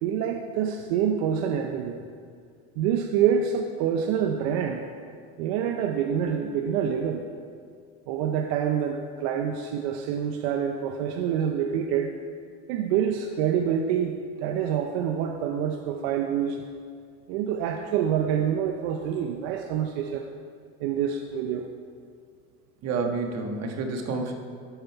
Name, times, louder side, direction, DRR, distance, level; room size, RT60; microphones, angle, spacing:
voice 1, 0.0-2.0 2.8-4.8 5.4-7.2 8.1-12.1 12.7-16.6 17.3-20.3 20.8-21.7, right 8 dB, 85° right, 4 dB, 0.7 m, -26 dB
voice 2, 22.8-24.3, right 4 dB, 55° right, 3 dB, 1.4 m, -29 dB
13.5 x 5.4 x 4.5 m, 2.2 s
supercardioid pair, 120°, 31 cm